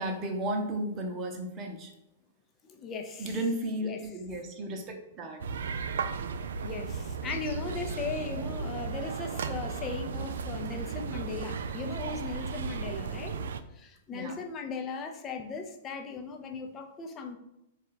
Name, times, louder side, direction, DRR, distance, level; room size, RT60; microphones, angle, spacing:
voice 1, 0.0-1.9 3.2-5.5 14.1-14.4, right 1 dB, 30° right, 3 dB, 0.9 m, -34 dB
voice 2, 2.7-3.4 3.8-4.0 6.6-13.4 13.7-17.4, left 5 dB, 25° left, 4 dB, 0.7 m, -38 dB
sound 1, 5.4-13.6, right 5 dB, 70° right, 0.3 m, -35 dB
3.6 x 2.5 x 4.4 m, 0.85 s
hypercardioid pair, 110°, 0 cm